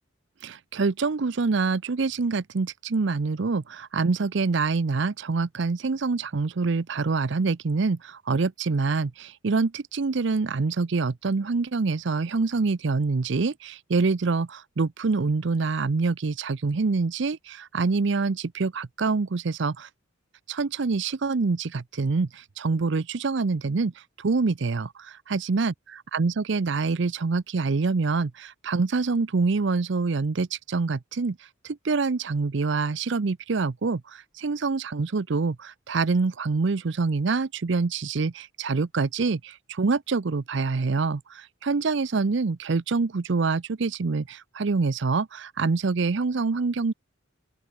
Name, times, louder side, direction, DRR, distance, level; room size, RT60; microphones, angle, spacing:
voice 1, 0.4-19.9 20.5-46.9, right 4 dB, 55° right, 0.6 m, -26 dB
open air
head